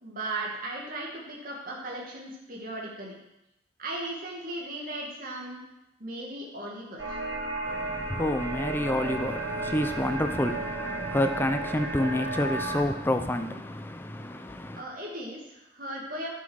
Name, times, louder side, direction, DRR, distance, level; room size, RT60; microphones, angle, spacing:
voice 1, 0.0-3.1 3.8-5.6 6.0-7.2 14.7-16.3, right 1 dB, 50° right, 2.0 m, -37 dB
sound 1, 7.0-12.8, right 2 dB, 80° right, 1.9 m, -33 dB
voice 2, 7.6-14.8, left 1 dB, 10° left, 0.5 m, -29 dB
11.0 x 6.3 x 6.2 m
head